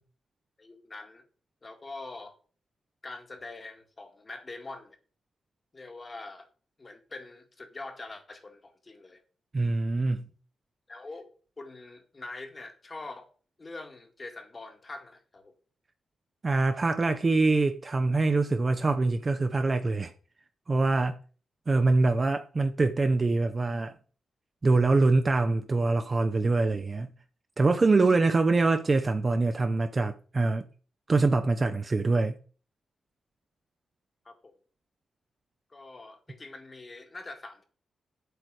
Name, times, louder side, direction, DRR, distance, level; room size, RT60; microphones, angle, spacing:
voice 1, 0.6-1.2 1.6-2.3 3.0-5.0 5.7-6.5 6.8-9.2 10.9-11.3 11.6-13.3 13.6-15.5 34.3-34.5 35.7-37.6, left 2 dB, 30° left, 1.9 m, -44 dB
voice 2, 9.5-10.3 16.4-20.1 20.7-21.2 21.7-23.9 24.6-27.1 27.6-30.7 31.1-32.4, right 3 dB, 30° right, 0.8 m, -24 dB
9.4 x 7.9 x 4.9 m
wide cardioid pair, 125°, 0 cm